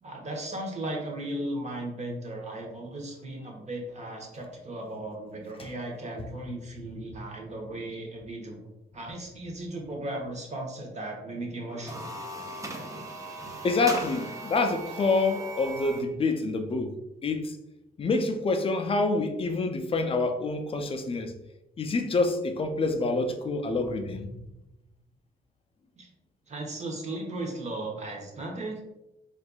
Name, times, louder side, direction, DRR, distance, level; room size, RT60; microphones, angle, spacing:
voice 1, 0.0-8.6 8.9-12.1 26.0-26.1 26.5-29.0, right 1 dB, 40° right, 0.9 m, -36 dB
sound 1, 11.7-16.1, right 2 dB, 20° right, 0.5 m, -38 dB
voice 2, 13.6-17.0 17.2-17.6 18.0-21.3 21.8-24.3, left 3 dB, 30° left, 0.4 m, -27 dB
4.2 x 2.5 x 2.3 m
cardioid pair, 85°, 18 cm